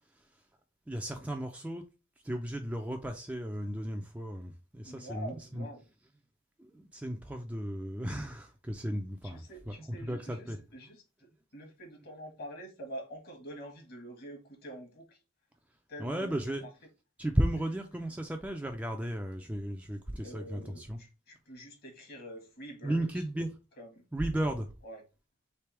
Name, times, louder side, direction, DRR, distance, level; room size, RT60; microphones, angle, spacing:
voice 1, 0.9-1.9 2.2-5.7 6.6-9.4 9.9-10.6 16.0-16.6 17.2-21.0 22.8-23.5 24.1-24.7, right 1 dB, 5° right, 0.4 m, -34 dB
voice 2, 4.8-5.8 9.2-15.2 15.9-16.4 17.6-17.7 20.2-23.1 23.8-24.0 24.8-25.0, right 1 dB, 45° left, 1.4 m, -46 dB
3.4 x 3.3 x 4.5 m
head